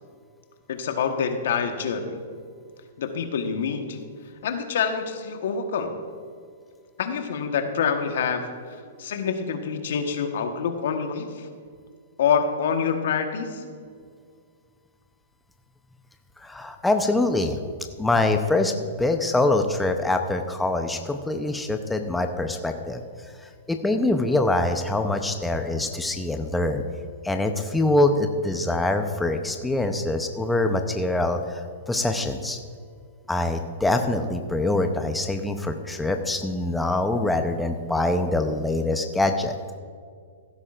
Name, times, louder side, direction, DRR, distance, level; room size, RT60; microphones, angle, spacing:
voice 1, 0.7-2.2 3.0-4.0 4.4-6.1 7.0-8.4 9.0-11.5 12.2-13.6, left 6 dB, 70° left, 6 dB, 1.2 m, -26 dB
voice 2, 16.4-17.6 18.0-23.0 23.7-26.8 27.2-31.6 31.9-32.6 33.3-39.6, left 2 dB, 5° left, 5 dB, 0.7 m, -24 dB
15.0 x 12.0 x 2.5 m, 2.1 s
hypercardioid pair, 125°, 0 cm